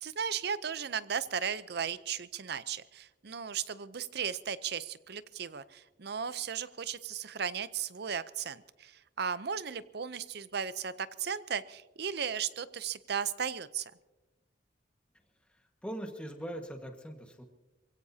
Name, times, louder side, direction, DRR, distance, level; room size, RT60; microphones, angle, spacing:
voice 1, 0.0-13.9, right 7 dB, 55° right, 15 dB, 0.6 m, -36 dB
voice 2, 15.5-17.4, right 1 dB, 5° left, 3 dB, 1.5 m, -41 dB
27.0 x 16.5 x 2.8 m, 1.1 s
head